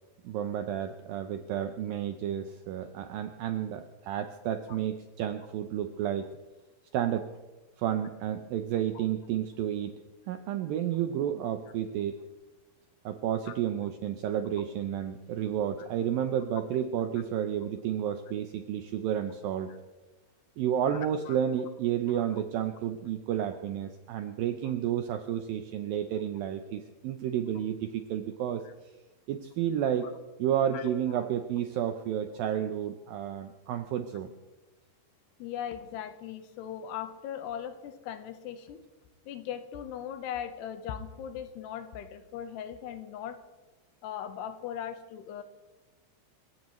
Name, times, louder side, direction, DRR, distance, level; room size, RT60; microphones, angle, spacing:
voice 1, 0.2-6.3 6.9-7.3 7.8-10.0 10.3-12.1 13.1-19.7 20.6-28.6 29.3-30.1 30.4-34.3, right 10 dB, 80° right, 7 dB, 2.1 m, -31 dB
voice 2, 35.4-38.8 39.3-43.4 44.0-45.4, left 9 dB, 80° left, 9 dB, 3.0 m, -39 dB
28.5 x 15.5 x 3.1 m, 1.2 s
omnidirectional pair, 5.0 m